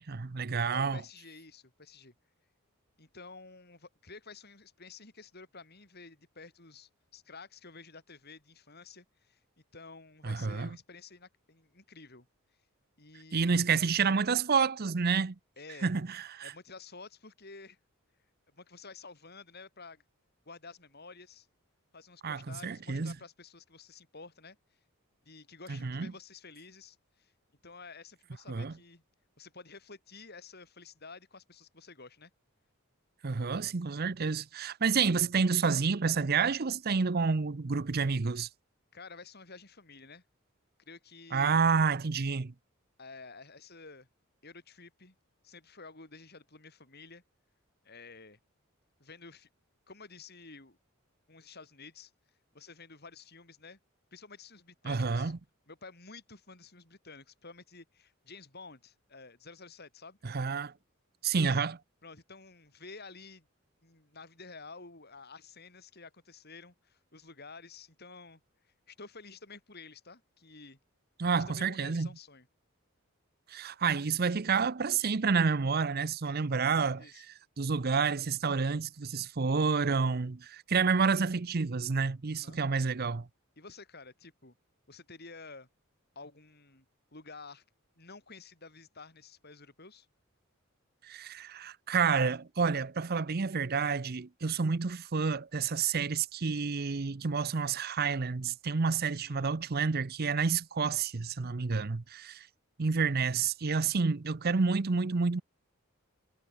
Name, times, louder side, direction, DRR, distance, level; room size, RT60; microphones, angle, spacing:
voice 1, 0.0-1.0 10.2-10.7 13.3-15.4 15.8-16.5 22.2-23.1 25.7-26.1 28.5-28.7 33.2-38.5 41.3-42.5 54.8-55.4 60.2-60.7 61.2-61.8 71.2-72.1 73.5-77.3 77.6-83.3 91.0-102.5 102.8-105.4, right 5 dB, 45° right, 0.7 m, -29 dB
voice 2, 0.7-2.1 3.0-9.4 9.7-12.3 13.0-13.7 15.6-15.9 16.4-17.8 18.5-20.0 20.5-21.5 21.9-24.6 25.3-27.3 27.6-29.0 29.4-32.3 34.9-35.0 38.9-40.2 40.9-41.6 43.0-44.1 44.4-45.2 45.4-47.2 47.8-48.4 49.0-49.5 49.9-50.8 51.3-52.1 52.5-53.8 54.1-55.3 55.7-60.2 62.0-63.5 63.8-68.4 68.9-70.8 71.3-72.5 76.9-77.2 82.3-82.6 83.6-84.5 84.9-85.7 86.2-86.9 87.1-87.6 88.0-90.1 99.1-99.5, left 4 dB, 50° left, 6.0 m, -51 dB
head